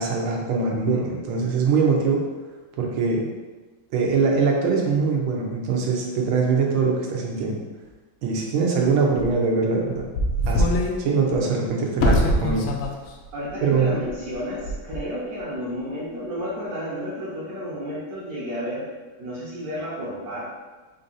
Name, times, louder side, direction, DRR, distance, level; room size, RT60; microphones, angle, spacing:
voice 1, 0.0-2.2 2.8-3.3 3.9-7.6 8.2-10.1 10.5-10.7 11.0-12.7 13.6-14.0, right 4 dB, 90° right, 0 dB, 1.6 m, -22 dB
sound 1, 9.2-9.3 10.0-11.0 11.3-11.4 12.0-12.9 13.2-13.3 14.1-14.3 14.7-15.0, left 1 dB, 85° left, 1.4 m, -22 dB
voice 2, 13.3-18.9 19.2-20.4, equal, 55° right, -7 dB, 1.2 m, -31 dB
4.7 x 2.6 x 3.9 m, 1.3 s
omnidirectional pair, 2.2 m